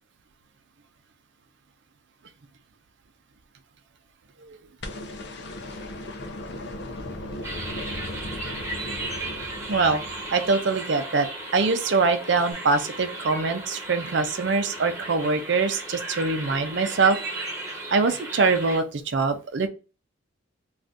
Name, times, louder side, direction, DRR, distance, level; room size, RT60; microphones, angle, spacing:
sound 1, 4.8-11.0 12.5-12.6, left 1 dB, 60° left, 0.5 m, -37 dB
sound 2, 7.4-18.8, right 2 dB, 15° right, 0.9 m, -35 dB
voice 1, 9.7-10.0 10.3-11.3 11.5-17.2 17.9-19.7, right 4 dB, 65° right, 8 dB, 0.5 m, -23 dB
2.6 x 2.4 x 3.4 m, 0.32 s
head